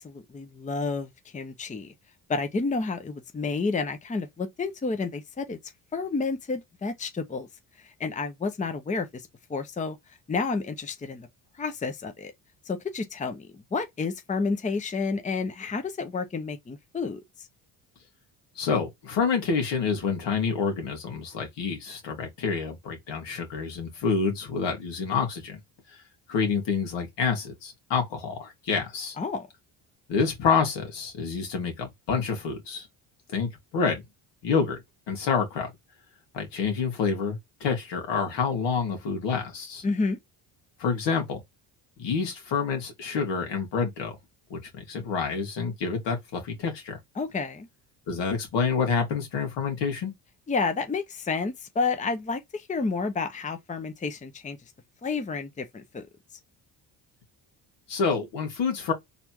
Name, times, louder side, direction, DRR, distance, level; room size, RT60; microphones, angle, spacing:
voice 1, 0.0-1.9 2.3-5.6 5.9-7.5 7.8-9.2 9.5-10.0 10.3-11.3 11.6-12.3 12.7-17.5 29.2-29.5 39.8-40.2 47.2-47.7 50.5-54.6 55.0-56.1, left 4 dB, 20° left, 0.7 m, -30 dB
voice 2, 18.6-25.6 26.3-29.2 30.1-32.9 33.3-34.0 34.4-34.8 35.1-35.7 36.3-39.8 40.8-41.4 42.0-44.1 44.5-47.0 48.1-50.1 57.9-58.9, left 5 dB, 75° left, 2.2 m, -28 dB
4.2 x 3.4 x 2.9 m
cardioid pair, 100°, 42 cm